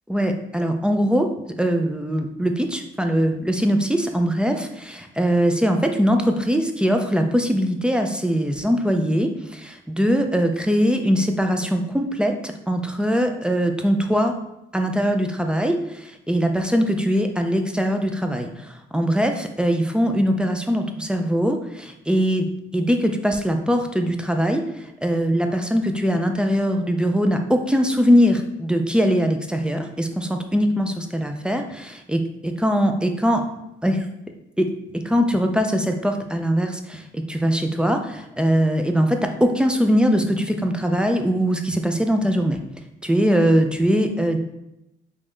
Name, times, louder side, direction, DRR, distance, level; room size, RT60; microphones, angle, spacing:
voice 1, 0.1-14.3 14.7-33.4 33.8-34.1 34.6-42.6 43.0-44.4, equal, 5° right, 5 dB, 0.4 m, -21 dB
3.3 x 2.5 x 3.5 m, 0.87 s
cardioid pair, 90°, 20 cm